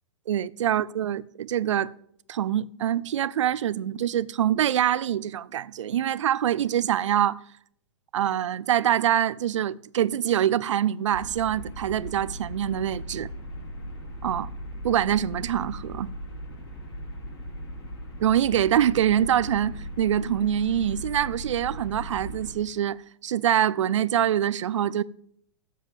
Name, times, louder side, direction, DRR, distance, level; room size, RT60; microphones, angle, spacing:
voice 1, 0.3-1.9 2.3-7.4 8.1-13.3 14.2-14.5 14.8-16.1 18.2-25.0, right 10 dB, 85° right, 0.4 m, -25 dB
sound 1, 11.1-22.5, equal, 60° left, 4.6 m, -38 dB
7.6 x 7.3 x 6.9 m
hypercardioid pair, 145°, 15 cm